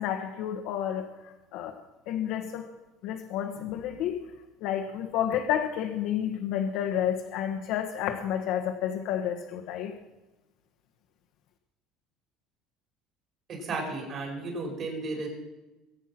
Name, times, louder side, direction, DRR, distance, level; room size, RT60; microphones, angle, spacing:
voice 1, 0.0-1.7 2.1-2.7 3.0-4.2 4.6-9.9, left 10 dB, 65° left, 3 dB, 1.2 m, -30 dB
voice 2, 13.5-15.3, right 3 dB, 40° right, 0 dB, 5.3 m, -34 dB
22.0 x 8.2 x 6.0 m, 1.1 s
cardioid pair, 140°, 0 cm